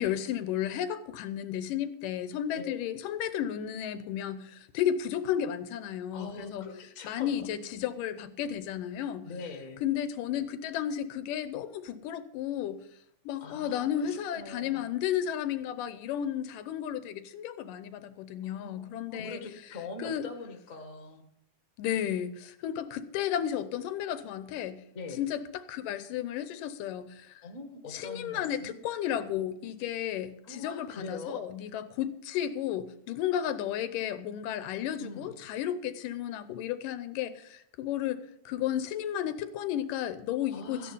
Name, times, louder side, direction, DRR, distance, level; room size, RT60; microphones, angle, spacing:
voice 1, 0.0-6.7 7.0-9.3 9.8-12.8 13.3-19.4 20.0-20.2 21.8-24.8 25.2-27.4 27.9-40.9, left 10 dB, 85° left, 12 dB, 2.4 m, -33 dB
voice 2, 6.1-7.5 9.2-9.8 13.4-14.9 18.4-21.2 24.9-25.2 27.4-28.8 30.4-31.4 35.0-35.3 40.5-40.9, left 3 dB, 30° left, 5 dB, 1.7 m, -42 dB
14.0 x 10.0 x 5.5 m, 0.72 s
omnidirectional pair, 3.8 m